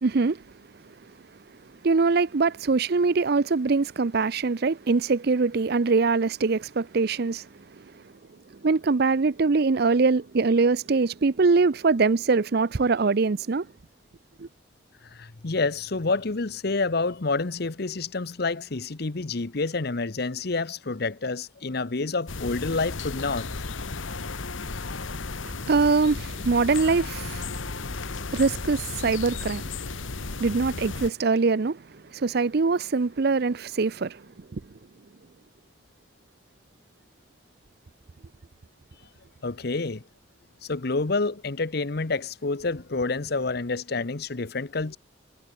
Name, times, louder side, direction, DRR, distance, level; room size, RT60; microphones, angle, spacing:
voice 1, 0.0-0.4 1.8-7.5 8.6-13.7 14.4-14.5 25.4-27.5 28.3-29.7 30.4-31.8 32.1-34.2 34.5-34.6, right 4 dB, 50° right, 0.5 m, -23 dB
voice 2, 15.1-23.5 39.4-40.0 40.6-45.0, left 3 dB, 55° left, 0.9 m, -28 dB
sound 1, 22.3-31.1, left 3 dB, 80° left, 1.4 m, -34 dB
head